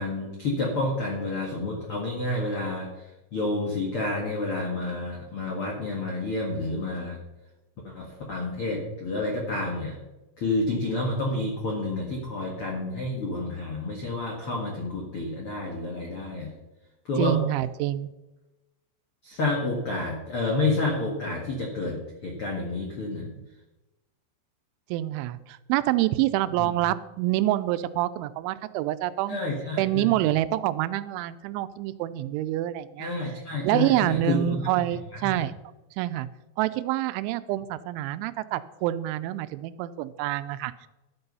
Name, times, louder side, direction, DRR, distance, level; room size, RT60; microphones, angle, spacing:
voice 1, 0.0-3.0 3.3-7.2 7.8-9.9 10.4-16.5 17.0-17.4 19.2-23.2 26.5-26.7 29.3-30.1 33.0-35.4, left 2 dB, 70° left, -1 dB, 1.3 m, -29 dB
voice 2, 17.2-18.1 23.4-23.5 24.9-29.4 29.8-33.1 33.6-35.5 36.0-36.3 36.6-40.9, right 14 dB, 85° right, 13 dB, 3.0 m, -27 dB
12.5 x 8.0 x 5.4 m, 1.0 s
omnidirectional pair, 5.3 m